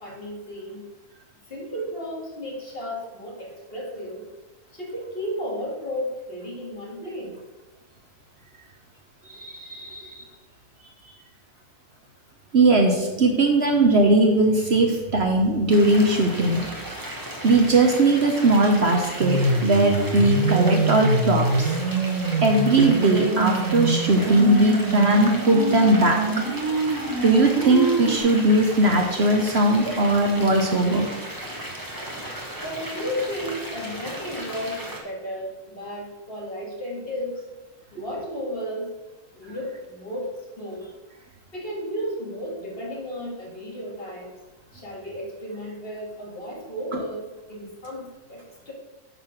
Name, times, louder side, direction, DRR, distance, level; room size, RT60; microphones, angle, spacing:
voice 1, 0.0-0.9 1.5-4.2 4.7-7.4 32.6-37.4 37.9-38.9 39.4-40.9 41.5-44.3 44.7-48.7, equal, 40° left, -2 dB, 2.0 m, -33 dB
voice 2, 9.3-10.3 12.5-16.6 17.4-21.7 22.4-26.2 27.2-31.1, right 2 dB, 50° right, 2 dB, 1.0 m, -19 dB
sound 1, 15.7-35.0, right 1 dB, 15° right, 1.2 m, -36 dB
sound 2, 19.2-28.2, right 3 dB, 70° right, 1.5 m, -25 dB
9.3 x 4.1 x 5.9 m, 1.1 s
omnidirectional pair, 1.5 m